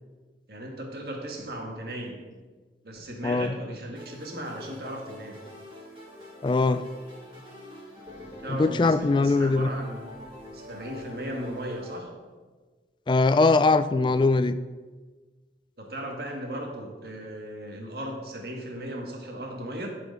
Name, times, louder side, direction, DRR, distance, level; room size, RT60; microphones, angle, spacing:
voice 1, 0.5-2.2 2.8-5.4 8.4-10.1 10.5-12.1 15.8-19.9, right 1 dB, 60° right, 1 dB, 1.7 m, -36 dB
voice 2, 3.2-3.5 6.4-6.8 8.5-9.7 13.1-14.6, left 3 dB, 25° left, 13 dB, 0.3 m, -21 dB
sound 1, 4.0-12.0, left 1 dB, 30° right, 3.3 m, -45 dB
11.5 x 5.0 x 5.3 m, 1.4 s
head